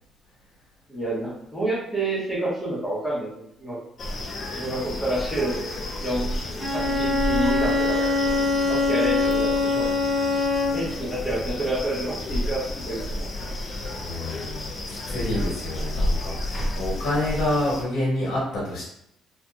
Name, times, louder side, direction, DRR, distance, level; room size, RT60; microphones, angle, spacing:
voice 1, 0.9-3.8 4.5-5.6 6.0-6.3 6.7-8.0 8.7-9.9 10.7-13.3, right 1 dB, 10° left, -7 dB, 0.9 m, -28 dB
sound 1, 4.0-17.8, left 1 dB, 40° left, 0.5 m, -31 dB
Bowed string instrument, 6.6-11.0, left 3 dB, 40° right, 0.7 m, -23 dB
voice 2, 14.0-18.8, left 1 dB, 80° left, -6 dB, 1.2 m, -28 dB
2.7 x 2.6 x 2.3 m, 0.78 s
cardioid pair, 150°, 0 cm